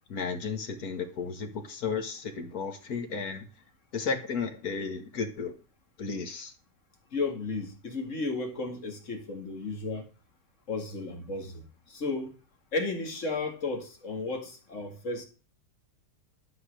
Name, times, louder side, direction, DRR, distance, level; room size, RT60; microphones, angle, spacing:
voice 1, 0.1-3.5 3.9-5.6 6.0-6.5, left 5 dB, 60° left, 2.0 m, -33 dB
voice 2, 7.1-10.1 10.7-12.4 12.7-15.3, left 3 dB, 45° left, 2.3 m, -34 dB
12.5 x 5.6 x 6.5 m
omnidirectional pair, 1.8 m